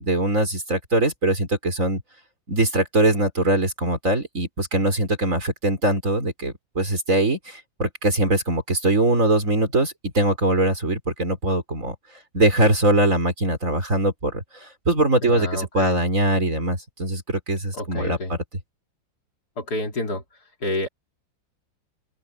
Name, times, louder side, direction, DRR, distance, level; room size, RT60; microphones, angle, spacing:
voice 1, 0.0-2.0 2.5-11.9 12.3-18.2, right 1 dB, 40° right, 4.7 m, -22 dB
voice 2, 15.2-16.0 17.7-18.4 19.6-20.2 20.6-20.9, left 1 dB, 55° left, 3.8 m, -28 dB
open air
omnidirectional pair, 2.1 m